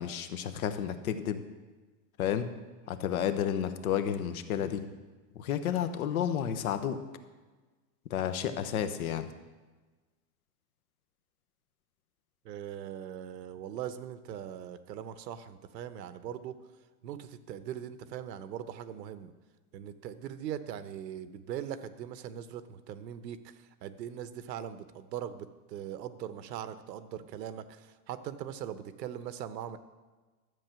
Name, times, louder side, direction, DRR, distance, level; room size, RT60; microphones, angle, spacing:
voice 1, 0.0-1.4 2.2-2.5 2.9-4.8 5.3-7.0 8.1-9.3, left 9 dB, 60° left, 10 dB, 1.0 m, -31 dB
voice 2, 12.4-16.6 17.0-19.3 19.7-29.8, right 10 dB, 85° right, 12 dB, 1.0 m, -40 dB
12.5 x 7.8 x 5.9 m, 1.3 s
supercardioid pair, 175°, 49 cm